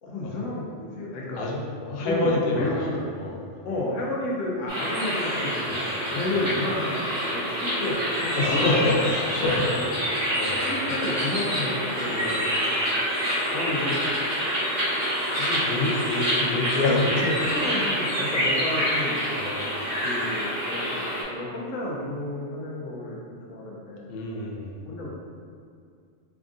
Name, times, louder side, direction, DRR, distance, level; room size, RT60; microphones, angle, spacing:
voice 1, 0.0-1.5 1.9-3.1 3.6-7.1 7.3-9.0 9.4-10.0 10.6-12.3 13.5-14.0 15.3-15.9 16.9-19.2 20.0-24.1 24.9-25.1, left 1 dB, 80° left, -4 dB, 1.0 m, -31 dB
voice 2, 1.4-3.4 5.6-5.7 6.3-6.4 8.3-9.6 10.0-10.1 10.4-10.6 11.6-11.7 12.1-12.4 15.1-17.3 19.0-19.6 24.1-24.7, left 2 dB, 60° left, -2 dB, 0.7 m, -28 dB
sound 1, 4.7-21.2, equal, 50° right, 1.4 m, -27 dB
3.6 x 3.5 x 2.5 m, 2.2 s
omnidirectional pair, 1.3 m